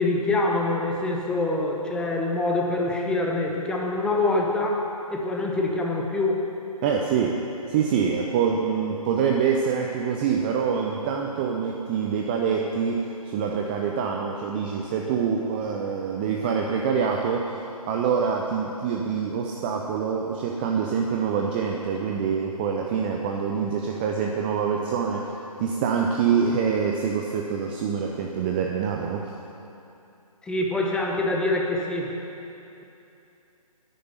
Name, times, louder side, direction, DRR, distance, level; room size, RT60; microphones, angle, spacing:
voice 1, 0.0-4.8 5.1-6.4 30.4-32.1, left 2 dB, 5° left, 0 dB, 0.9 m, -25 dB
voice 2, 6.8-29.3, right 6 dB, 15° right, 1 dB, 0.5 m, -25 dB
10.5 x 9.4 x 9.6 m, 2.8 s
figure-of-eight pair, 140°, 19 cm